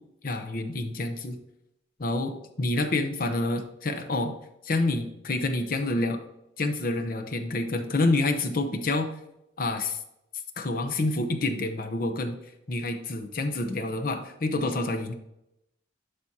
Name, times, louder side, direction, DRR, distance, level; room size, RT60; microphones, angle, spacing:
voice 1, 0.2-1.4 2.0-4.3 4.6-6.2 6.6-9.1 9.6-10.0 10.6-12.4 12.7-15.1, left 2 dB, 50° left, 6 dB, 0.8 m, -28 dB
11.5 x 5.0 x 2.8 m, 0.83 s
head